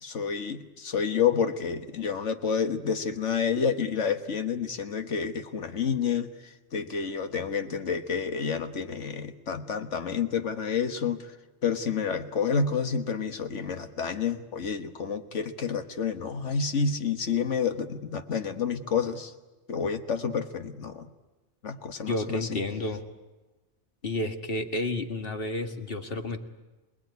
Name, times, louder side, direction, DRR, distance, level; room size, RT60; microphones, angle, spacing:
voice 1, 0.0-11.3 11.6-19.3 19.7-21.1 21.6-22.5, left 6 dB, 90° left, 8 dB, 1.8 m, -29 dB
voice 2, 22.1-23.1 24.0-26.4, left 2 dB, 50° left, 6 dB, 2.1 m, -31 dB
27.0 x 19.5 x 9.5 m, 1.2 s
omnidirectional pair, 1.2 m